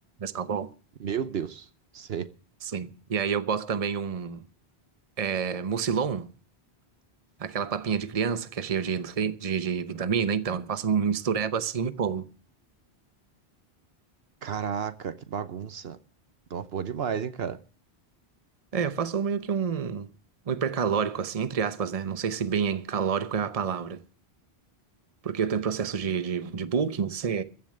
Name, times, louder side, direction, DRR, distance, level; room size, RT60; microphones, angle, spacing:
voice 1, 0.2-0.7 2.6-4.4 5.2-6.3 7.4-12.3 18.7-20.1 20.5-24.0 25.2-27.4, right 6 dB, 35° right, 0.9 m, -28 dB
voice 2, 1.0-1.7 1.9-2.3 14.4-16.0 16.5-17.6, right 7 dB, 70° right, 1.1 m, -32 dB
15.0 x 7.3 x 8.6 m
omnidirectional pair, 1.1 m